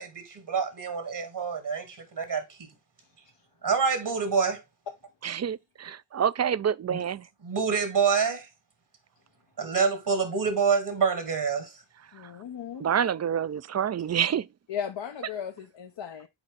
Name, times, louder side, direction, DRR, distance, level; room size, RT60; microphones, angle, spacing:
voice 1, 0.0-2.7 3.6-4.6 6.9-7.0 7.4-8.5 9.6-11.7, right 5 dB, 65° right, 1.8 m, -27 dB
voice 2, 5.2-7.2 12.8-14.5, right 8 dB, 40° right, 0.4 m, -27 dB
voice 3, 12.1-12.9 14.7-16.3, left 8 dB, 75° left, 0.8 m, -36 dB
7.1 x 4.3 x 3.7 m
cardioid pair, 50°, 44 cm